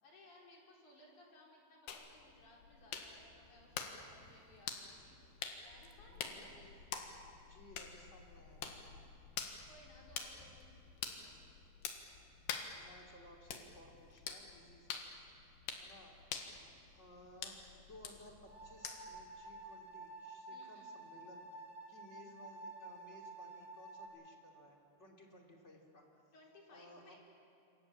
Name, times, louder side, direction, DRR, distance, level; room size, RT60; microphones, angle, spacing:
voice 1, 0.0-5.2 5.6-6.6 9.7-11.4 20.5-21.0 26.3-27.2, left 1 dB, 40° left, -2 dB, 5.3 m, -62 dB
sound 1, 1.9-19.3, left 7 dB, 65° left, 3.4 m, -48 dB
voice 2, 6.1-6.8 7.3-8.7 12.7-15.0 15.3-15.5 15.8-16.2 16.9-26.2 26.7-27.1, left 1 dB, 20° left, 0 dB, 1.9 m, -59 dB
sound 2, 18.5-24.1, right 2 dB, 25° right, 7.3 m, -51 dB
27.5 x 24.5 x 7.5 m, 2.8 s
omnidirectional pair, 5.6 m